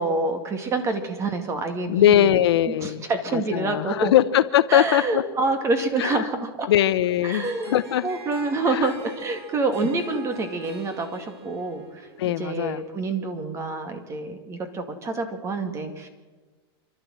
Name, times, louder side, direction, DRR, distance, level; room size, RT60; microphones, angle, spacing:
voice 1, 0.0-2.3 2.8-4.1 4.7-6.7 7.2-16.1, right 3 dB, 20° right, 8 dB, 2.2 m, -27 dB
voice 2, 1.9-3.1 3.3-5.2 6.0-6.3 6.7-8.1 8.7-8.9 12.2-12.8, left 11 dB, 70° left, 13 dB, 0.9 m, -21 dB
Harp, 7.1-12.9, right 4 dB, 80° right, 4.2 m, -45 dB
27.5 x 12.5 x 7.7 m, 1.3 s
supercardioid pair, 145°, 14 cm